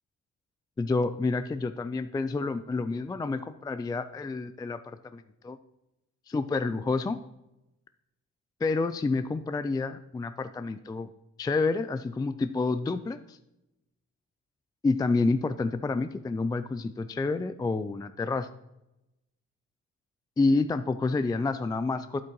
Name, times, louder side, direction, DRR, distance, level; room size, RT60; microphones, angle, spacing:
voice 1, 0.8-5.6 6.3-7.2 8.6-11.1 11.4-13.4 14.8-18.5 20.4-22.2, left 3 dB, 15° left, 11 dB, 0.3 m, -29 dB
8.9 x 8.2 x 3.0 m, 0.91 s
cardioid pair, 90°, 30 cm